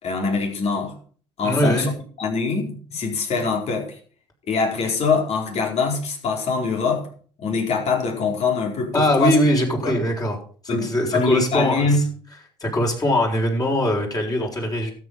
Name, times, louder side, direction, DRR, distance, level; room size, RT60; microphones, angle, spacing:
voice 1, 0.0-0.9 1.4-1.9 2.2-4.0 4.5-7.1 7.4-9.3 9.8-9.9 10.7-12.0, left 4 dB, 50° left, 2 dB, 4.6 m, -23 dB
voice 2, 1.4-1.9 8.9-10.4 10.6-11.8 12.6-14.9, equal, 25° left, 0 dB, 6.2 m, -21 dB
13.0 x 8.5 x 5.6 m, 0.44 s
hypercardioid pair, 65°, 13 cm